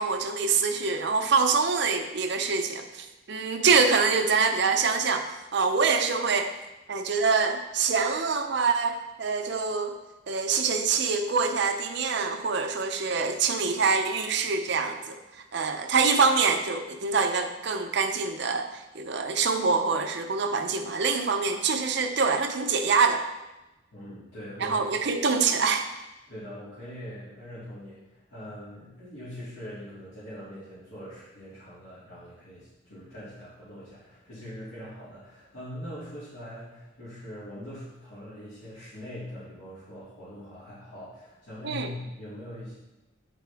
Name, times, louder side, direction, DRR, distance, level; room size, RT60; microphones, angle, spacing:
voice 1, 0.0-5.3 5.5-6.5 6.9-9.9 10.3-15.2 15.5-18.7 18.9-23.2 24.6-25.8 41.6-41.9, right 5 dB, 55° right, 5 dB, 0.6 m, -25 dB
voice 2, 23.9-24.8 26.3-42.7, equal, 70° left, -12 dB, 2.3 m, -42 dB
9.1 x 4.2 x 3.4 m, 1.0 s
head